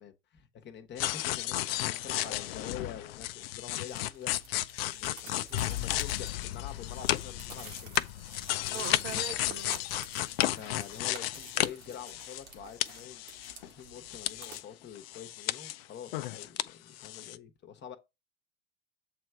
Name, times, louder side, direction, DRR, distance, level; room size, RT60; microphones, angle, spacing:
voice 1, 0.0-4.3 4.8-8.0 8.6-9.2 10.1-18.0, left 8 dB, 30° left, 1.0 m, -46 dB
sound 1, 1.0-12.6 12.8-14.6 15.0-16.7 17.0-17.4, left 15 dB, 60° left, 0.5 m, -33 dB
sound 2, 3.7-14.6, right 4 dB, 75° right, 1.6 m, -51 dB
voice 2, 8.7-9.8, right 8 dB, 40° right, 0.6 m, -40 dB
7.7 x 3.2 x 4.6 m
figure-of-eight pair, 75°, 34 cm